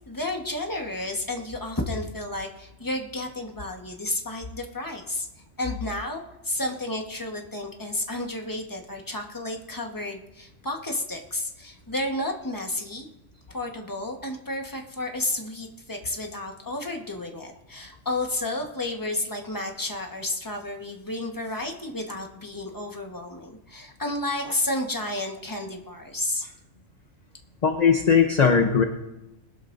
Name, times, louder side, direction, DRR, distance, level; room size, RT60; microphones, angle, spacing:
voice 1, 0.1-5.3 5.6-13.1 13.5-26.5, left 1 dB, 15° left, 2 dB, 1.4 m, -31 dB
voice 2, 27.6-28.8, left 6 dB, 35° left, 5 dB, 0.9 m, -19 dB
20.5 x 12.5 x 2.7 m, 0.94 s
omnidirectional pair, 1.3 m